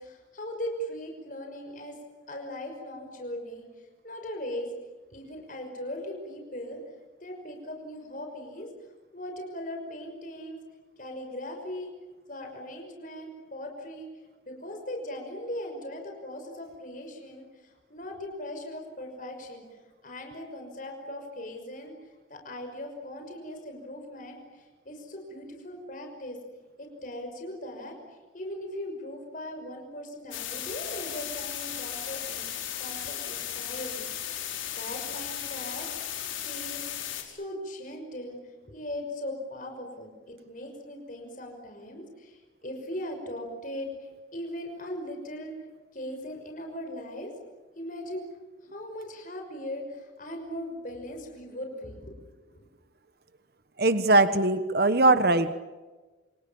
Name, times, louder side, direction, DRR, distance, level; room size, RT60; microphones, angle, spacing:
voice 1, 0.0-2.0 2.3-3.6 4.0-4.7 5.1-6.8 7.2-8.7 9.1-10.6 11.0-11.9 12.3-14.1 14.5-19.7 20.0-21.9 22.3-26.4 26.8-32.5 32.8-34.5 34.8-36.1 36.4-36.8 37.2-38.4 38.7-45.5 45.9-47.3 47.7-48.2 48.7-52.2 52.5-52.7, left 1 dB, 45° left, 3 dB, 5.8 m, -39 dB
sound 1, 30.3-37.2, left 11 dB, 85° left, 5.3 m, -35 dB
voice 2, 53.8-55.5, right 2 dB, 50° right, 11 dB, 1.3 m, -21 dB
28.5 x 28.5 x 7.2 m, 1.3 s
head